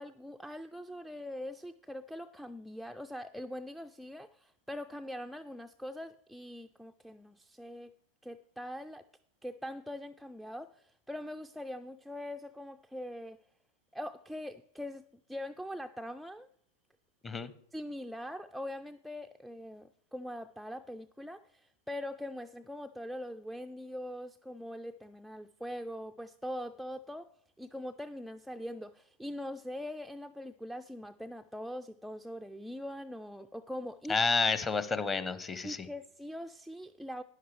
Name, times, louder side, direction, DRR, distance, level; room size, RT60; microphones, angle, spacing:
voice 1, 0.0-7.9 8.2-9.1 9.4-13.4 13.9-16.5 17.7-27.3 27.6-34.2 35.6-37.2, left 1 dB, ahead, 0.3 m, -42 dB
voice 2, 34.1-35.9, left 4 dB, 20° left, 0.8 m, -30 dB
12.5 x 10.0 x 3.3 m
figure-of-eight pair, 90°, 0 cm